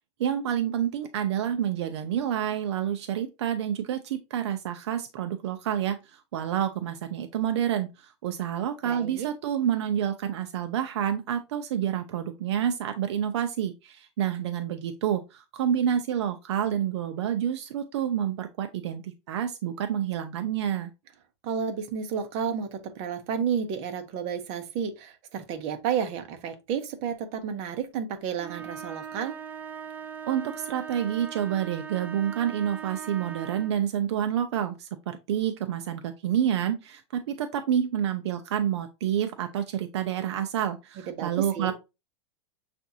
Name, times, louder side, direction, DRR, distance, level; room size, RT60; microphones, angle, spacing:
voice 1, 0.2-20.9 30.3-41.7, right 9 dB, 75° right, 0.6 m, -28 dB
voice 2, 8.8-9.3 21.4-29.4 41.0-41.7, right 7 dB, 45° right, 0.9 m, -31 dB
sound 1, 28.4-33.8, right 8 dB, 10° right, 0.4 m, -40 dB
6.9 x 2.6 x 2.7 m
supercardioid pair, 135°, 14 cm